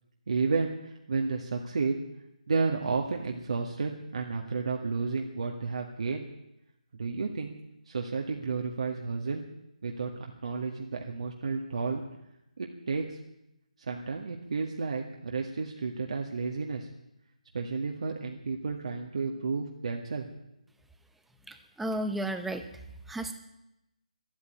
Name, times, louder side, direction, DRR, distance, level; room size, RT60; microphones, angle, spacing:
voice 1, 0.3-2.0 2.5-6.3 6.9-7.6 7.9-9.4 9.8-12.0 12.6-13.2 13.9-16.9 17.5-20.3, right 4 dB, 55° right, 1 dB, 1.8 m, -32 dB
voice 2, 21.5-22.7 23.1-23.3, right 1 dB, 5° right, 7 dB, 0.9 m, -33 dB
13.0 x 11.0 x 9.2 m, 0.87 s
figure-of-eight pair, 155°, 4 cm